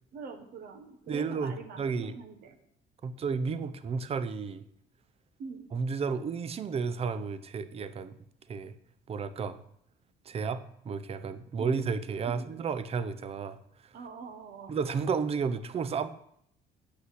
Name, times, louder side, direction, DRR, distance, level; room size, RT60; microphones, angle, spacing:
voice 1, 0.1-2.6 5.4-5.7 11.6-11.8 12.2-12.5 13.9-14.7, right 5 dB, 65° right, 6 dB, 1.3 m, -44 dB
voice 2, 1.1-2.2 3.0-4.6 5.7-8.1 8.5-8.7 9.1-9.6 10.3-13.6 14.7-16.1, right 5 dB, 35° right, 13 dB, 0.7 m, -32 dB
8.3 x 5.6 x 7.8 m, 0.72 s
cardioid pair, 110°, 17 cm